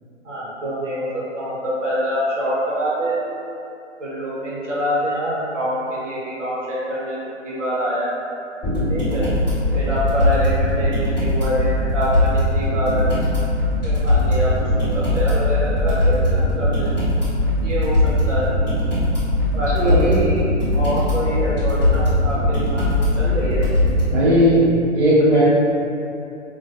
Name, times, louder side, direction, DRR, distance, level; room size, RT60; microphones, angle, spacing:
voice 1, 0.2-3.1 4.0-7.2 7.4-8.1 8.9-9.3 9.7-12.3 12.5-13.1 13.8-16.9 17.6-18.5 19.5-23.6, equal, 85° right, -8 dB, 1.0 m, -25 dB
sound 1, 8.6-24.0, left 1 dB, 10° left, 0.6 m, -20 dB
voice 2, 19.7-20.2 24.1-25.4, equal, 50° right, -11 dB, 0.6 m, -16 dB
2.2 x 2.2 x 2.5 m, 2.7 s
hypercardioid pair, 150°, 36 cm